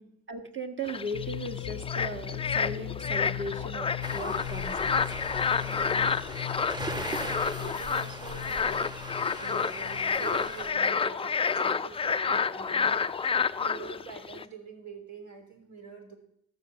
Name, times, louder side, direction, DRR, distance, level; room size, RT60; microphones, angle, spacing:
voice 1, 0.3-5.0 6.9-7.2, right 1 dB, 40° right, 3 dB, 1.5 m, -37 dB
sound 1, 0.8-14.4, left 5 dB, 20° left, 0.4 m, -30 dB
sound 2, 1.1-10.8, left 16 dB, 70° left, 0.6 m, -39 dB
sound 3, 4.0-10.7, right 1 dB, 15° right, 1.1 m, -40 dB
voice 2, 5.6-6.2 7.1-16.2, right 4 dB, 70° right, 3 dB, 3.3 m, -45 dB
14.5 x 6.8 x 6.9 m, 0.73 s
cardioid pair, 90°, 30 cm